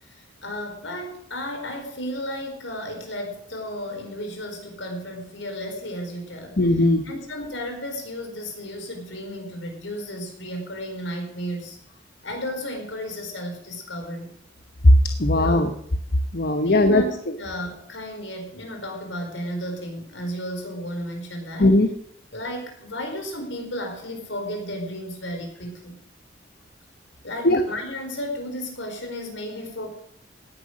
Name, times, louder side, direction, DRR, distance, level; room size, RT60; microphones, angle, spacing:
voice 1, 0.1-6.6 7.0-11.8 12.2-14.3 15.3-15.7 16.6-21.7 22.3-26.0 27.2-29.9, equal, 70° left, 4 dB, 4.6 m, -33 dB
voice 2, 6.6-7.0 14.8-15.7 16.3-17.0 21.6-21.9 27.4-27.6, left 1 dB, 50° left, 7 dB, 1.0 m, -17 dB
17.5 x 10.5 x 6.4 m, 0.64 s
head